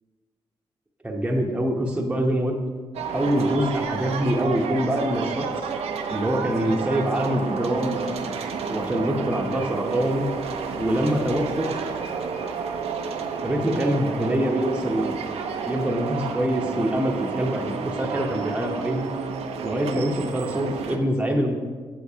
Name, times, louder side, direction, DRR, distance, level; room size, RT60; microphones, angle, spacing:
voice 1, 1.0-2.6 3.1-5.4 6.1-8.0 8.7-10.3 10.8-11.7 13.4-15.1 15.7-19.1 19.6-21.5, equal, 10° right, -1 dB, 0.9 m, -24 dB
sound 1, 2.9-21.0, right 5 dB, 85° right, 0.6 m, -31 dB
8.4 x 7.6 x 2.8 m, 1.5 s
cardioid pair, 80°, 10 cm